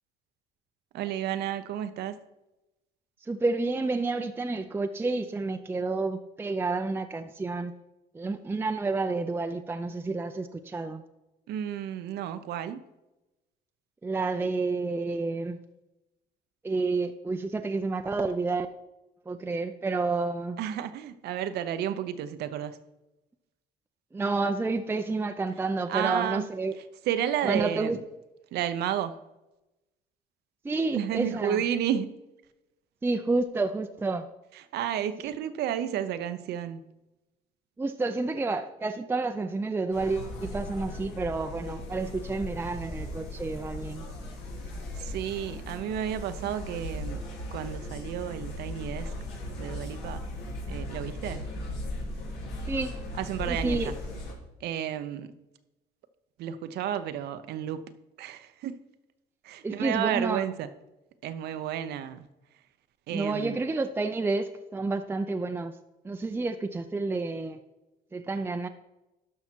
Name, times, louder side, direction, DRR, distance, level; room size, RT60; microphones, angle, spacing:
voice 1, 0.9-2.2 11.5-12.8 20.6-22.8 25.9-26.5 27.0-28.0 28.5-29.2 30.9-32.1 34.5-36.8 45.0-47.2 47.5-49.1 49.6-50.2 50.7-51.4 53.2-53.9 54.6-55.3 56.4-57.8 58.2-58.7 59.4-60.7 61.2-62.3 63.1-63.6, right 10 dB, 75° right, 11 dB, 0.7 m, -32 dB
voice 2, 3.2-7.7 8.1-11.0 14.0-15.6 16.6-18.7 19.3-20.6 24.1-26.7 27.4-28.0 30.6-31.6 33.0-34.3 37.8-44.1 52.7-52.9 53.5-53.9 59.6-60.4 63.1-65.8 66.0-67.6 68.1-68.7, right 3 dB, 15° right, 7 dB, 0.5 m, -30 dB
sound 1, 39.9-54.3, left 1 dB, 85° left, 2.7 m, -37 dB
12.0 x 5.7 x 4.5 m, 0.98 s
cardioid pair, 110°, 17 cm